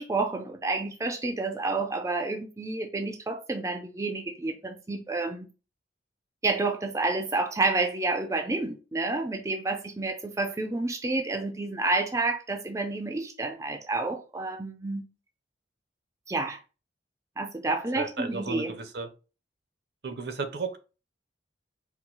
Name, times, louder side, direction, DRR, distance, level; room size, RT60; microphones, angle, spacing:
voice 1, 0.0-5.5 6.4-15.0 16.3-16.6 17.4-18.7, right 3 dB, 15° right, 0.4 m, -29 dB
voice 2, 18.0-19.1 20.0-20.8, right 4 dB, 60° right, 0.6 m, -34 dB
4.5 x 2.1 x 3.8 m
head